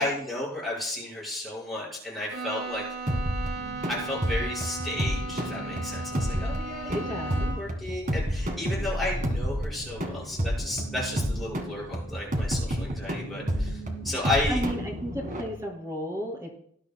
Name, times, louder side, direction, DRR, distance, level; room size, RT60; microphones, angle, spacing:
voice 1, 0.0-3.1 3.9-7.1 7.4-14.6, left 2 dB, ahead, -7 dB, 5.3 m, -33 dB
Bowed string instrument, 2.3-7.8, right 2 dB, 85° right, 5.0 m, -37 dB
sound 1, 3.1-15.4, equal, 40° right, 1.7 m, -30 dB
sound 2, 3.5-15.6, right 1 dB, 65° left, 5.0 m, -43 dB
voice 2, 6.9-7.5 14.5-16.5, equal, 15° right, -1 dB, 2.4 m, -34 dB
19.0 x 11.5 x 2.2 m, 0.66 s
head